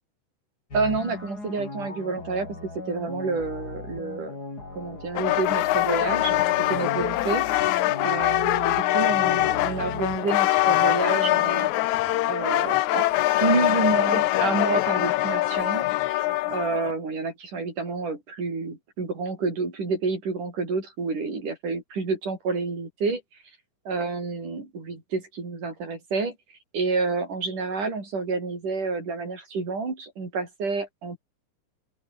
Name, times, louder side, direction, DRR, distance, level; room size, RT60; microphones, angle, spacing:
sound 1, 0.7-10.2, left 2 dB, 30° left, 5.9 m, -38 dB
voice 1, 0.7-4.3 4.8-11.7 12.3-13.1 13.3-15.9 16.5-23.2 23.9-26.4 26.7-31.2, right 4 dB, 85° right, 8.4 m, -29 dB
sound 2, 5.2-16.9, left 16 dB, 80° left, 2.1 m, -23 dB
open air
omnidirectional pair, 3.5 m